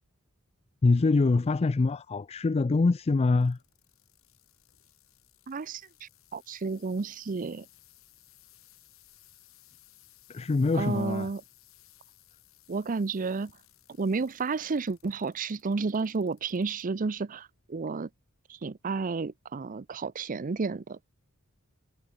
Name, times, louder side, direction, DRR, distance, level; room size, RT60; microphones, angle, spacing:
voice 1, 0.8-3.6 10.3-11.3, left 3 dB, 30° left, 0.4 m, -24 dB
sound 1, 3.4-16.8 17.4-17.8 18.5-18.6, left 15 dB, 70° left, 4.9 m, -60 dB
voice 2, 5.5-7.7 10.7-11.4 12.7-13.5 14.0-18.1 18.5-21.0, right 4 dB, 40° right, 0.5 m, -31 dB
head